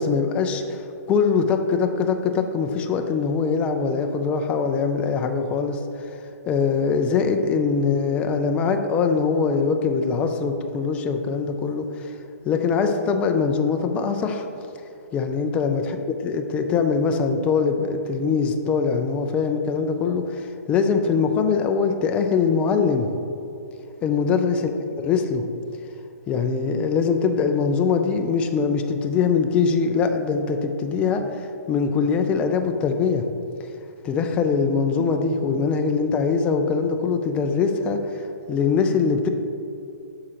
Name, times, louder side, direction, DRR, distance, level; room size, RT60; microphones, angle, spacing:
voice 1, 0.0-5.8 6.5-12.1 12.4-14.5 15.1-16.0 16.2-23.1 24.0-25.5 26.3-33.2 34.0-39.3, left 5 dB, 15° left, 6 dB, 0.3 m, -22 dB
9.4 x 6.1 x 2.9 m, 2.7 s
hypercardioid pair, 155°, 9 cm